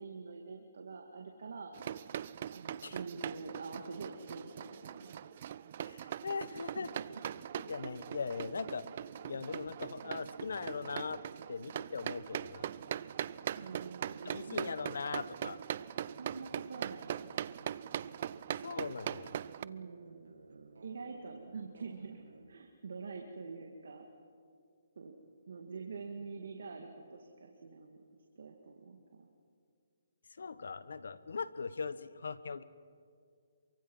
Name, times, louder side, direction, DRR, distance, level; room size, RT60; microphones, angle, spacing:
voice 1, 0.0-1.7 2.5-5.1 6.5-7.2 13.6-14.7 16.2-17.3 19.6-20.3 20.8-24.0 25.0-25.2 25.5-28.0 28.4-29.3, right 4 dB, 70° right, 2 dB, 2.2 m, -46 dB
sound 1, 1.7-19.7, right 10 dB, 40° right, 0.5 m, -41 dB
voice 2, 5.8-6.9 7.7-8.9 9.2-11.2 11.5-12.7 14.2-15.6 18.5-19.4 30.4-32.6, left 5 dB, 75° left, 15 dB, 1.1 m, -40 dB
sound 2, 6.5-22.5, right 4 dB, 85° right, 1.8 m, -57 dB
27.5 x 24.0 x 5.6 m, 2.3 s
hypercardioid pair, 160°, 0 cm